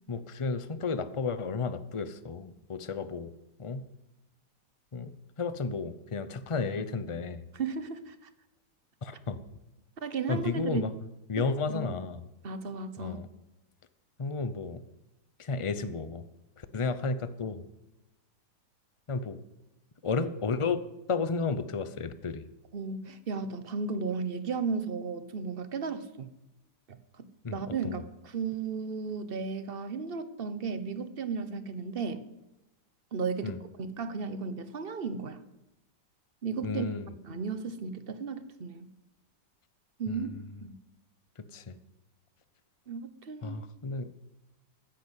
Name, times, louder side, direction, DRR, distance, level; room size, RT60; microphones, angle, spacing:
voice 1, 0.1-3.3 3.6-3.8 4.9-7.5 9.0-9.4 10.3-10.9 11.3-12.2 13.0-13.3 14.2-14.8 15.4-16.3 16.6-17.6 19.1-19.4 20.0-20.8 21.1-22.5 27.4-28.0 33.4-33.6 36.6-37.1 40.1-40.4 41.5-41.8 43.4-44.1, left 4 dB, 50° left, 12 dB, 0.3 m, -33 dB
voice 2, 7.5-8.1 10.0-10.9 11.4-11.9 12.4-13.2 22.7-26.3 27.2-32.2 33.1-35.4 36.4-36.9 37.3-38.9 40.0-40.7 42.9-43.6, right 5 dB, 35° right, 12 dB, 1.1 m, -35 dB
14.5 x 10.0 x 8.3 m, 0.94 s
omnidirectional pair, 2.0 m